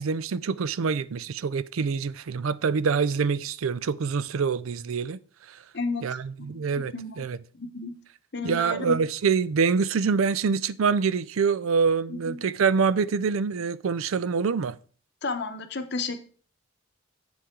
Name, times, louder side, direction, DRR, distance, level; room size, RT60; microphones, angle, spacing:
voice 1, 0.0-5.2 5.5-5.6 6.0-7.4 8.4-14.8, right 5 dB, 90° right, 0.4 m, -25 dB
voice 2, 5.7-6.1 6.4-7.2 7.5-7.9 8.3-9.0 12.1-12.4 15.2-16.2, left 3 dB, 55° left, 1.0 m, -32 dB
7.8 x 7.1 x 3.7 m
head